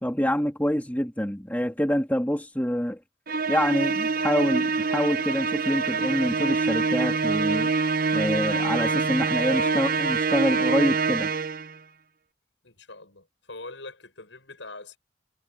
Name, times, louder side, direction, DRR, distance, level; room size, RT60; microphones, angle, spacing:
voice 1, 0.0-3.0 3.5-7.7 8.1-11.3, equal, 10° left, 2.6 m, -26 dB
Musical instrument, 3.3-11.8, right 4 dB, 50° right, 1.0 m, -25 dB
voice 2, 12.6-15.0, left 3 dB, 75° left, 7.7 m, -43 dB
head